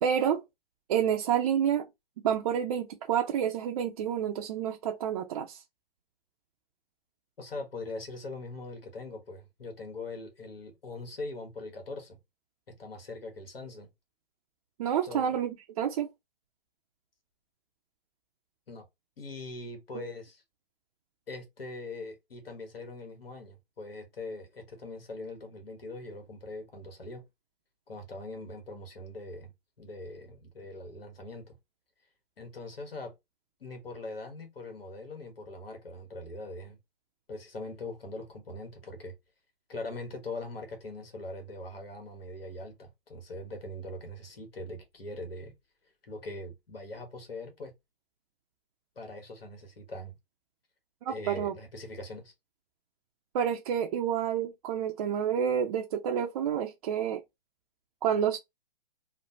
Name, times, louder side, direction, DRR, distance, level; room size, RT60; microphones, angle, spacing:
voice 1, 0.0-0.4 0.9-1.9 2.2-5.6 14.8-16.1 19.9-20.1 51.1-51.5 53.3-57.2 58.0-58.4, right 8 dB, 40° right, 0.4 m, -29 dB
voice 2, 7.4-12.2 12.7-13.9 15.0-15.4 18.7-18.8 19.2-20.4 21.3-27.2 27.9-29.5 29.8-31.6 32.4-33.1 33.6-36.8 37.3-39.1 39.7-45.5 46.0-47.7 49.0-50.2 51.1-52.3, left 2 dB, 80° left, 1.2 m, -42 dB
3.1 x 2.0 x 2.6 m
hypercardioid pair, 130°, 29 cm